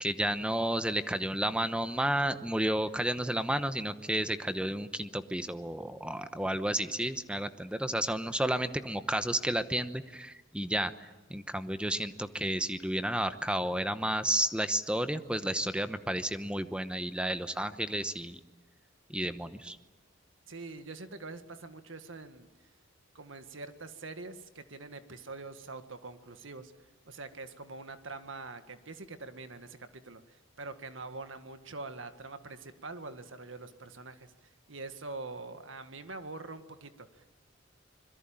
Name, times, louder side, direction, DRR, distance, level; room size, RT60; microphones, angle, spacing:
voice 1, 0.0-10.9 11.3-18.4 19.1-19.8, right 1 dB, 5° right, 10 dB, 1.0 m, -31 dB
voice 2, 20.5-22.5 23.1-26.7 27.1-37.4, right 3 dB, 75° right, 9 dB, 1.8 m, -44 dB
25.5 x 22.0 x 8.9 m, 1.2 s
head